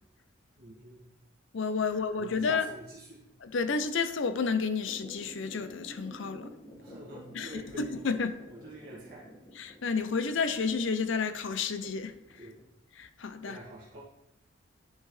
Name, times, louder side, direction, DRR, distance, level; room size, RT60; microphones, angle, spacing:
voice 1, 0.6-1.0 2.2-3.2 6.7-8.0 8.5-9.2 12.4-12.6 13.4-14.0, right 1 dB, 45° right, 1.7 m, -46 dB
voice 2, 1.5-2.6 3.4-6.5 7.3-8.4 9.6-12.1 13.0-13.6, left 5 dB, 65° left, 0.5 m, -31 dB
sound 1, 4.8-12.6, equal, 30° left, 1.7 m, -50 dB
9.6 x 5.7 x 3.2 m
head